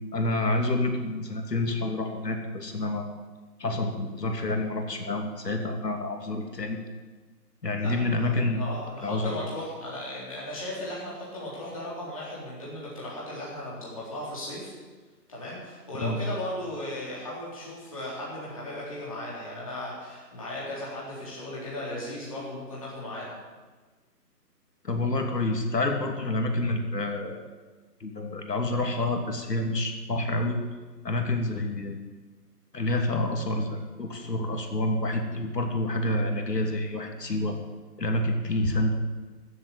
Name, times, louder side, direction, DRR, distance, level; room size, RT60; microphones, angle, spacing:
voice 1, 0.1-3.1 3.6-6.8 7.6-8.6 9.0-9.4 15.9-16.2 24.8-27.4 28.0-30.6 31.0-32.0 32.7-37.6 38.0-38.9, left 2 dB, 75° left, 4 dB, 2.8 m, -28 dB
voice 2, 8.2-14.7 15.3-23.3, left 1 dB, 20° left, -6 dB, 3.7 m, -36 dB
14.5 x 7.7 x 8.8 m, 1.3 s
hypercardioid pair, 180°, 49 cm